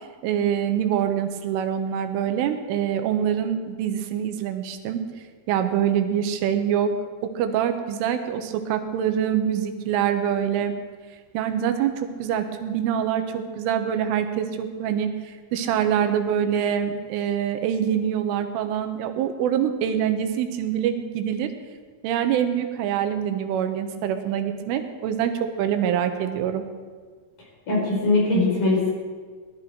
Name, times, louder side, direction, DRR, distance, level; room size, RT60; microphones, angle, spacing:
voice 1, 0.2-5.0 5.5-6.9 7.4-10.7 11.4-21.5 22.0-25.3 25.6-26.6, right 9 dB, 90° right, 7 dB, 3.6 m, -25 dB
voice 2, 27.7-28.9, left 2 dB, 40° left, -4 dB, 6.5 m, -21 dB
20.0 x 12.5 x 4.6 m, 1.5 s
omnidirectional pair, 5.5 m